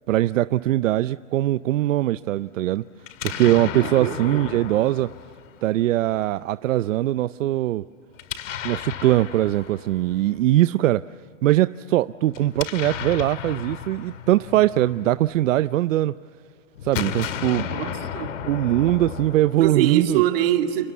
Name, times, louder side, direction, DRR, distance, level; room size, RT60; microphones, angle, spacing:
voice 1, 0.1-2.8 3.2-5.1 5.6-7.8 8.6-11.0 11.4-16.1 16.8-17.7 18.4-20.2, right 14 dB, 75° right, 14 dB, 0.7 m, -21 dB
Explosion, 3.0-6.1 8.1-10.4 12.3-15.7 16.8-20.1, left 9 dB, 80° left, 2.1 m, -34 dB
voice 2, 3.7-4.4 17.7-18.4 19.6-20.9, right 12 dB, 50° right, 5 dB, 2.4 m, -24 dB
29.0 x 28.5 x 7.2 m, 2.1 s
supercardioid pair, 165°, 38 cm